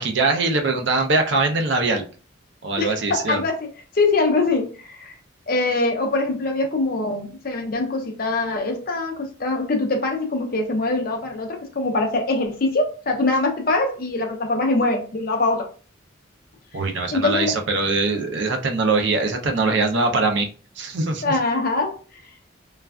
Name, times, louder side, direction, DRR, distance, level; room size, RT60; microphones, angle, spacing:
voice 1, 0.0-2.0 2.6-3.4 16.7-20.5 20.8-21.4, right 3 dB, 60° right, 0.5 m, -22 dB
voice 2, 2.8-5.1 5.5-15.7 17.1-17.5 21.2-22.0, left 3 dB, 45° left, 0.6 m, -23 dB
3.2 x 2.4 x 2.3 m
head